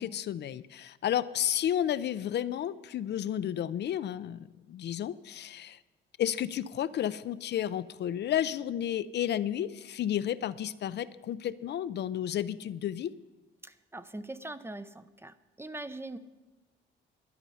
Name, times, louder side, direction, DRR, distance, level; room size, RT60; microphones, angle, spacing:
voice 1, 0.0-4.4 4.7-5.8 6.2-13.1, left 10 dB, 60° left, 15 dB, 0.5 m, -32 dB
voice 2, 13.6-16.2, right 2 dB, 10° right, 13 dB, 0.6 m, -42 dB
12.0 x 11.0 x 5.6 m, 1.1 s
cardioid pair, 90°, 20 cm